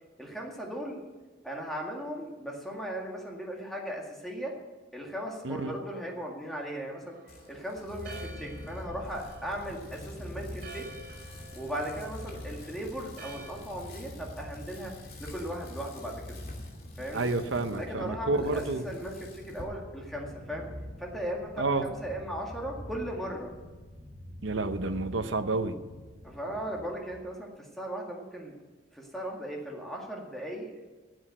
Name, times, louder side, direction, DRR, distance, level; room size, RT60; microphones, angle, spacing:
voice 1, 0.2-1.0 1.4-4.5 4.9-7.1 7.5-10.9 11.5-14.9 15.2-16.4 17.0-17.3 17.7-20.7 21.0-23.5 26.2-28.6 28.9-30.7, equal, ahead, -1 dB, 2.0 m, -37 dB
Church bell, 7.1-13.5, right 1 dB, 50° right, 4.3 m, -50 dB
Bicycle, 7.3-19.6, left 2 dB, 50° left, 2.7 m, -51 dB
Purr, 7.8-27.2, left 1 dB, 30° left, 3.2 m, -45 dB
voice 2, 17.1-18.8 21.6-21.8 24.4-25.7, right 3 dB, 75° right, 8 dB, 0.9 m, -29 dB
14.0 x 8.0 x 7.8 m, 1.3 s
head